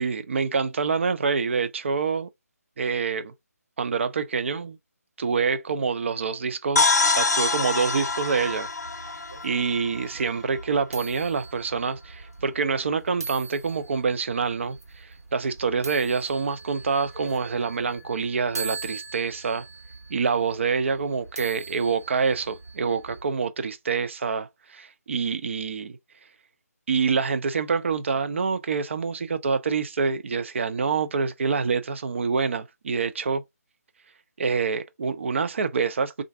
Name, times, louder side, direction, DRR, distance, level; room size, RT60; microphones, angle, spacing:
voice 1, 0.0-2.3 2.8-3.3 3.8-4.8 5.2-8.7 9.4-19.7 20.1-26.0 26.9-33.4 34.4-36.2, right 5 dB, 45° right, 0.4 m, -26 dB
sound 1, 6.8-10.4, left 3 dB, 75° left, 0.4 m, -25 dB
sound 2, 7.9-23.2, right 4 dB, 70° right, 1.3 m, -41 dB
2.5 x 2.4 x 3.3 m
figure-of-eight pair, 155°, 9 cm